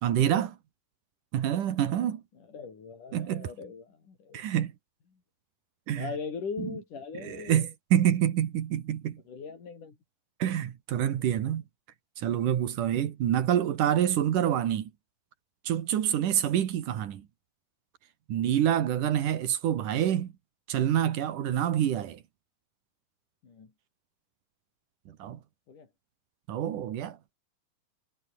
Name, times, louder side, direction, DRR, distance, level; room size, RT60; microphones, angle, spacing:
voice 1, 0.0-0.6 1.3-2.2 3.1-3.5 4.3-4.7 5.9-6.1 6.6-6.7 7.1-9.2 10.4-11.6 12.2-14.9 15.6-17.3 18.3-20.3 20.7-22.2 25.1-25.4 26.5-27.2, right 10 dB, 85° right, 3.3 m, -27 dB
voice 2, 2.5-4.4 5.9-7.7 9.3-10.0 21.5-21.7 23.4-23.7 25.7-25.9, left 5 dB, 85° left, 6.1 m, -40 dB
omnidirectional pair, 3.5 m